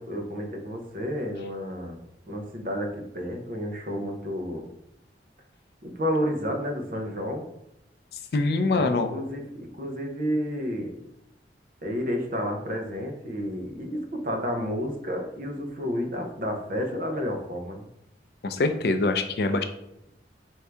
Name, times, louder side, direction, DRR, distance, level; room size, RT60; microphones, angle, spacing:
voice 1, 0.0-2.0 2.3-4.7 5.8-7.4 8.7-10.9 11.8-17.9, equal, 50° right, 3 dB, 0.7 m, -31 dB
voice 2, 8.3-9.1 18.4-19.6, left 3 dB, 60° left, 8 dB, 0.4 m, -24 dB
4.6 x 2.7 x 3.3 m, 0.83 s
head